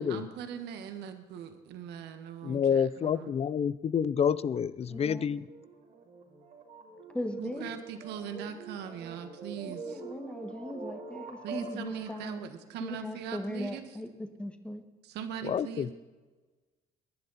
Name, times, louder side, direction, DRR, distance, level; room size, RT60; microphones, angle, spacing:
voice 1, 0.0-2.9 3.1-3.3 7.4-10.0 11.4-13.8 15.1-15.9, right 8 dB, 80° right, 8 dB, 1.5 m, -40 dB
voice 2, 2.4-5.5 15.4-15.9, left 7 dB, 35° left, 18 dB, 0.6 m, -28 dB
voice 3, 4.9-5.3 7.1-7.7 9.7-12.5 12.8-14.8, left 1 dB, 5° left, 6 dB, 1.7 m, -39 dB
sound 1, 4.9-12.3, right 4 dB, 65° right, 4.1 m, -45 dB
22.5 x 11.0 x 4.2 m, 1.3 s
cardioid pair, 110°, 17 cm